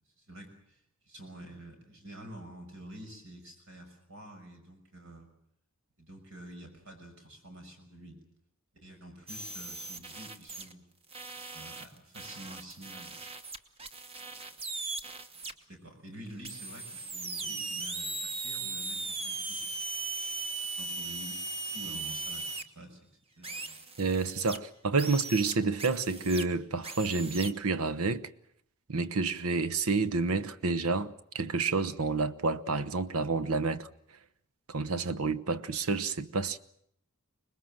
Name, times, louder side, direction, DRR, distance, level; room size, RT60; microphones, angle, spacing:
voice 1, 0.2-0.8 1.1-5.3 6.0-8.2 8.8-10.9 11.5-13.2 15.3-19.8 20.8-21.4 21.7-23.0 23.4-23.8, right 1 dB, 65° right, 6.3 m, -48 dB
sound 1, 9.3-10.7 11.1-15.5 16.4-22.6 23.4-24.6 25.0-26.4 26.8-27.5, right 3 dB, 25° right, 1.2 m, -38 dB
voice 2, 24.0-28.3 28.9-33.9 34.7-36.6, right 3 dB, 80° right, 1.0 m, -29 dB
25.5 x 20.5 x 7.6 m
head